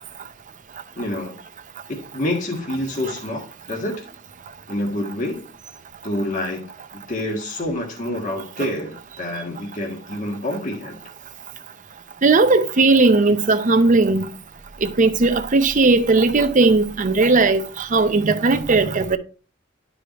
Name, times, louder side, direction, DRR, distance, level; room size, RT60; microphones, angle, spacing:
voice 1, 1.0-1.3 1.9-4.1 4.7-5.5 6.0-6.6 7.1-11.0, left 1 dB, 40° left, 1.5 m, -27 dB
voice 2, 12.2-14.3 14.8-19.2, right 3 dB, 40° right, 0.6 m, -17 dB
11.5 x 4.9 x 3.0 m
head